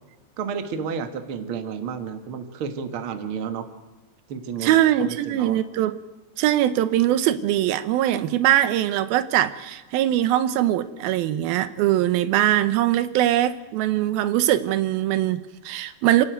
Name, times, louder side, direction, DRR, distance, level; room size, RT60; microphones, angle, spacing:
voice 1, 0.4-3.7 4.3-5.6, right 6 dB, 50° right, 1.9 m, -31 dB
voice 2, 4.6-6.0 6.4-16.2, right 12 dB, 85° right, 2.7 m, -21 dB
27.5 x 12.0 x 9.3 m
omnidirectional pair, 4.2 m